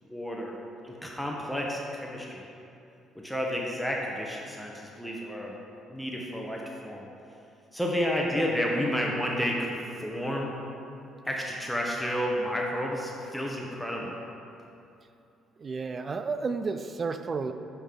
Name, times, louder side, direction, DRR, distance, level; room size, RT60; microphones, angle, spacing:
voice 1, 0.0-0.6 0.8-2.5 3.1-5.6 5.9-7.1 7.7-10.5 11.2-14.2, equal, 5° left, -2 dB, 0.8 m, -31 dB
voice 2, 15.6-17.5, right 4 dB, 40° right, 9 dB, 0.3 m, -31 dB
9.8 x 3.6 x 3.7 m, 2.7 s
cardioid pair, 85°, 0 cm